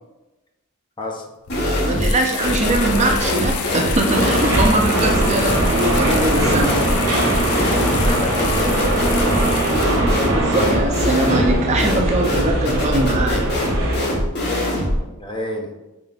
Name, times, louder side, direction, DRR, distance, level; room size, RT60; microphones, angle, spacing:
sound 1, 1.5-9.8, left 6 dB, 80° left, 0.4 m, -29 dB
sound 2, 1.5-2.2 2.4-15.0, equal, 50° left, 1.0 m, -22 dB
voice 1, 1.9-6.8 10.2-13.5, right 2 dB, 30° right, 2 dB, 0.4 m, -21 dB
sound 3, 4.1-14.0, right 1 dB, 65° right, 0.8 m, -21 dB
voice 2, 8.0-9.6 15.2-15.7, left 1 dB, 20° left, 1 dB, 0.5 m, -30 dB
4.2 x 3.7 x 2.3 m, 1.1 s
head